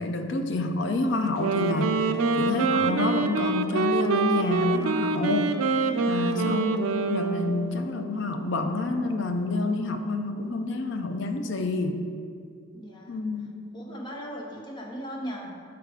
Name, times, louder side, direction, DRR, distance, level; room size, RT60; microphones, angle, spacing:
voice 1, 0.0-2.0 2.4-5.6 6.1-12.0 13.1-13.5, left 3 dB, 60° left, 5 dB, 0.5 m, -28 dB
Wind instrument woodwind instrument, 1.3-7.8, right 4 dB, 85° right, 0.4 m, -26 dB
voice 2, 12.7-13.2 13.7-15.5, equal, 20° left, -2 dB, 0.8 m, -38 dB
7.3 x 3.4 x 4.9 m, 2.3 s
head